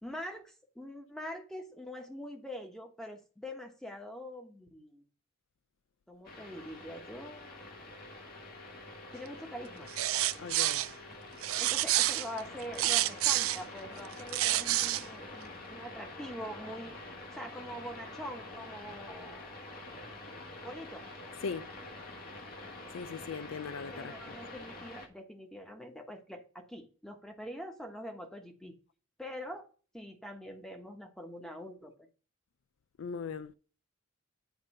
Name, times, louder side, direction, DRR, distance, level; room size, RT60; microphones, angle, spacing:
voice 1, 0.0-5.0 6.1-7.7 9.1-9.9 11.6-16.9 17.3-19.6 20.6-21.1 23.9-28.7 29.2-29.7 29.9-32.1, equal, ahead, 1.1 m, -44 dB
sound 1, 6.2-25.1, left 2 dB, 45° left, 1.4 m, -47 dB
sound 2, 9.9-10.9 11.4-13.6 14.1-15.0, right 15 dB, 80° right, 0.4 m, -28 dB
voice 2, 10.4-10.8 21.4-21.7 22.9-24.1 33.0-33.5, left 5 dB, 65° left, 0.4 m, -39 dB
9.1 x 3.7 x 5.3 m
head